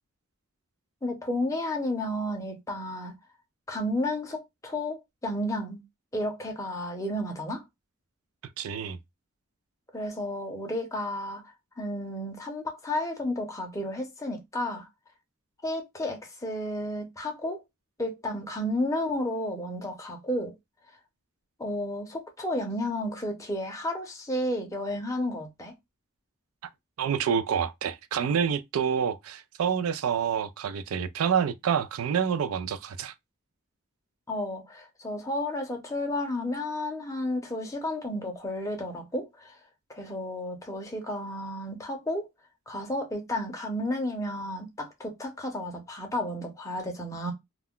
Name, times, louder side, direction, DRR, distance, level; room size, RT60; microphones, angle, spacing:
voice 1, 1.0-3.2 3.7-5.8 6.1-7.6 9.9-11.4 11.8-14.9 15.6-17.6 18.0-20.5 21.6-25.7 34.3-39.6 39.9-42.3 42.7-47.3, left 1 dB, 15° left, 0.6 m, -32 dB
voice 2, 8.6-9.0 27.0-33.1, right 7 dB, 85° right, 0.3 m, -27 dB
2.3 x 2.1 x 3.6 m
head